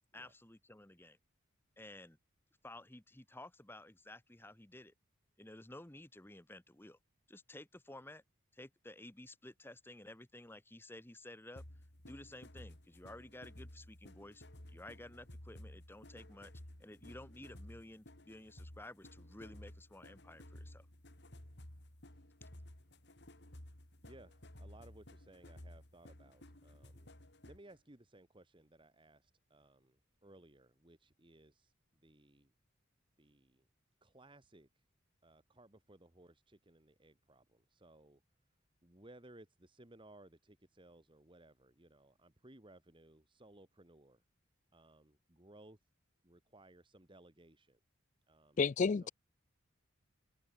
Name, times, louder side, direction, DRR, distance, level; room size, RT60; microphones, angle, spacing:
voice 1, 0.1-1.2 1.8-2.2 2.6-4.9 5.4-7.0 7.3-8.2 8.5-11.6 12.1-16.5 16.8-20.9 22.4-22.5, left 1 dB, 10° left, 1.0 m, -53 dB
sound 1, 11.6-27.7, left 1 dB, 55° left, 3.7 m, -55 dB
voice 2, 24.0-27.1 27.4-31.7 32.0-32.5 33.2-33.7 34.0-34.7 35.2-38.2 38.8-44.2 44.7-45.8 46.2-47.8 48.3-48.6 48.9-49.1, right 1 dB, 25° right, 1.7 m, -61 dB
voice 3, 48.6-49.1, left 5 dB, 35° left, 0.3 m, -30 dB
head